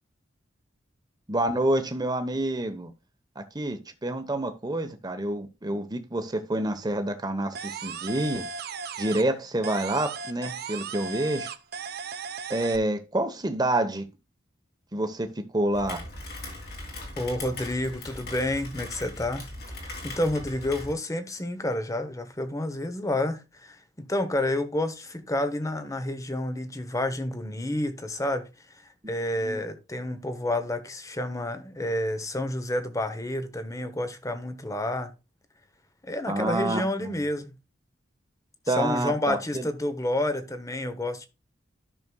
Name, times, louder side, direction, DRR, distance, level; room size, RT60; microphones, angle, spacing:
voice 1, 1.3-2.9 3.4-8.5 9.0-11.5 12.5-14.0 14.9-16.0 29.4-29.6 36.3-37.1 38.7-39.7, right 1 dB, 20° right, 1.0 m, -28 dB
sound 1, 7.5-9.4 9.6-12.8, right 5 dB, 55° right, 0.6 m, -36 dB
Rain, 15.7-20.9, left 1 dB, 55° left, 2.7 m, -39 dB
voice 2, 17.2-19.5 19.8-35.1 36.0-37.6 38.7-41.3, left 1 dB, 15° left, 0.9 m, -29 dB
12.5 x 6.1 x 2.3 m
head